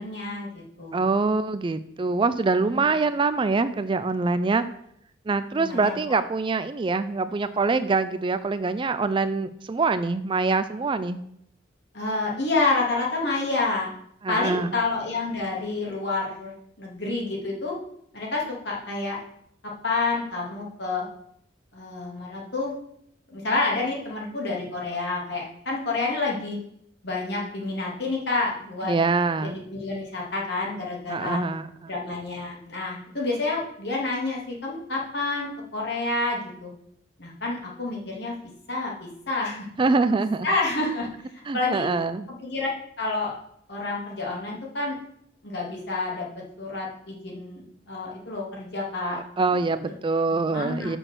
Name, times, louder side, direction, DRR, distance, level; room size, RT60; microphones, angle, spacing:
voice 1, 0.0-1.0 2.7-2.9 5.6-6.0 11.9-13.9 14.3-17.8 18.1-19.2 19.8-21.0 21.7-22.7 23.3-26.6 27.0-28.9 29.4-31.4 31.9-36.7 37.2-38.3 38.7-38.9 39.3-39.7 40.4-41.1 41.5-41.9 42.4-42.7 43.0-43.3 43.7-45.0 45.4-46.3 46.6-49.2 49.4-49.6 50.5-51.0, left 3 dB, 60° left, -3 dB, 2.5 m, -28 dB
voice 2, 0.9-4.6 5.3-11.2 14.2-14.7 28.8-29.6 31.1-31.9 39.8-40.5 41.5-42.3 49.1-51.0, right 3 dB, 25° right, 12 dB, 0.3 m, -24 dB
6.2 x 6.0 x 6.6 m, 0.71 s
head